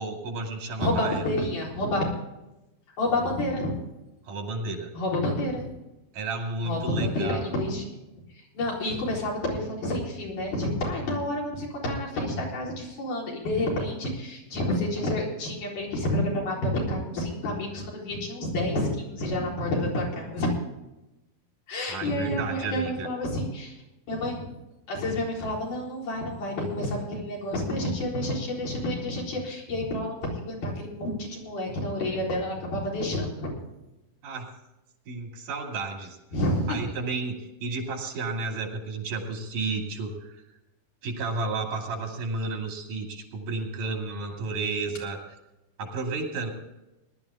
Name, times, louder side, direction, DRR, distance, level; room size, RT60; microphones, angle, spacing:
voice 1, 0.0-1.2 4.3-4.9 6.1-7.4 21.9-23.1 34.2-34.5 35.1-36.2 36.7-40.4 41.0-45.2 45.8-46.5, right 3 dB, 80° right, 2 dB, 4.1 m, -32 dB
voice 2, 0.8-2.1 3.0-3.7 4.9-5.7 6.6-7.8 8.3-20.5 21.7-23.8 24.1-24.5 24.9-33.5 36.3-36.9, left 1 dB, 80° left, -3 dB, 5.6 m, -29 dB
19.5 x 12.0 x 3.6 m, 0.96 s
omnidirectional pair, 3.6 m